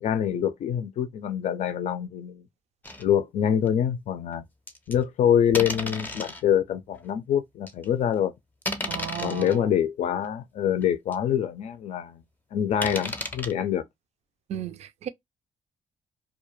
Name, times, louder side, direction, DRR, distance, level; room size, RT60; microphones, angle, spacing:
voice 1, 0.0-2.4 3.0-4.4 4.9-8.3 9.2-12.2 12.5-13.8, left 9 dB, 60° left, 0.4 m, -25 dB
sound 1, 2.8-3.1 3.6-3.7 4.7-4.9 5.5-6.4 7.1-7.2 7.7-7.9 8.6-9.6 10.2-10.3 10.8-10.9 11.1-11.2 12.8-13.5, left 2 dB, 15° left, 0.6 m, -33 dB
voice 2, 8.9-9.7 14.5-15.1, right 10 dB, 60° right, 0.4 m, -35 dB
2.3 x 2.1 x 3.0 m
cardioid pair, 80°, 13 cm